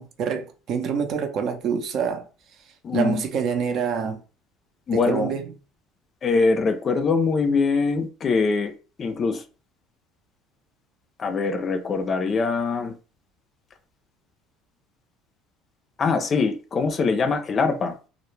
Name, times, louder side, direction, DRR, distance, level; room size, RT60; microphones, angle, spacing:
voice 1, 0.0-2.3 2.9-4.2 4.9-5.4, right 7 dB, 55° right, 0.5 m, -26 dB
voice 2, 2.8-3.2 4.9-5.3 6.2-8.7 9.0-9.4 11.2-13.0 16.0-17.9, left 4 dB, 35° left, 0.4 m, -23 dB
2.1 x 2.0 x 3.0 m
supercardioid pair, 100°, 0 cm